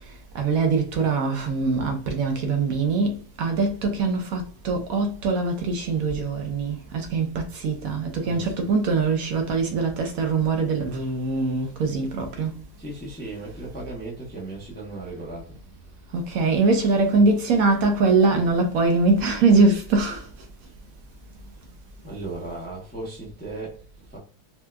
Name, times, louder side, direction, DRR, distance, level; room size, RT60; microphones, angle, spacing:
voice 1, 0.3-12.6 16.1-20.3, right 3 dB, 70° right, 1.0 m, -22 dB
voice 2, 8.2-8.7 12.8-15.6 22.0-24.2, right 2 dB, 15° left, 0.4 m, -36 dB
4.3 x 2.3 x 2.2 m
omnidirectional pair, 1.7 m